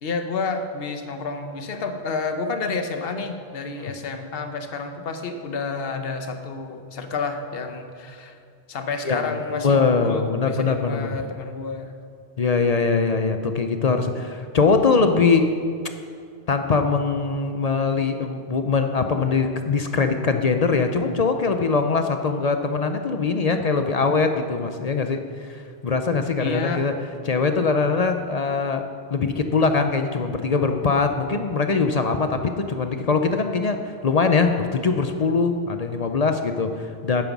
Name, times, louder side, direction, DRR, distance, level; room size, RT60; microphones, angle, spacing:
voice 1, 0.0-8.4 8.7-11.9 26.4-26.8, left 4 dB, 65° left, 6 dB, 1.1 m, -30 dB
voice 2, 9.5-11.1 12.4-15.5 16.5-26.9 27.3-37.2, left 4 dB, 45° left, 6 dB, 0.6 m, -22 dB
9.1 x 9.1 x 6.0 m, 2.2 s
omnidirectional pair, 1.1 m